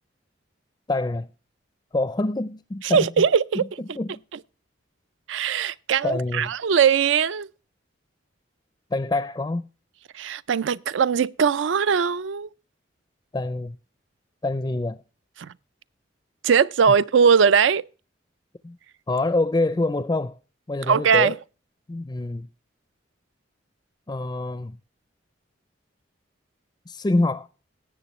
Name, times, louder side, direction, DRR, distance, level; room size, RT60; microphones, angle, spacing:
voice 1, 0.9-1.3 1.9-3.1 3.5-3.7 4.0-4.2 6.0-6.5 8.9-9.6 13.3-13.8 14.4-15.0 16.9-17.0 18.6-18.8 19.1-20.4 20.7-21.3 21.9-22.5 24.1-24.8 26.9-27.5, left 2 dB, 20° left, 0.4 m, -26 dB
voice 2, 2.8-3.6 5.3-7.5 10.1-12.5 15.4-15.5 16.4-17.8 20.9-21.3, right 6 dB, 75° right, 0.4 m, -20 dB
17.5 x 7.7 x 3.1 m
head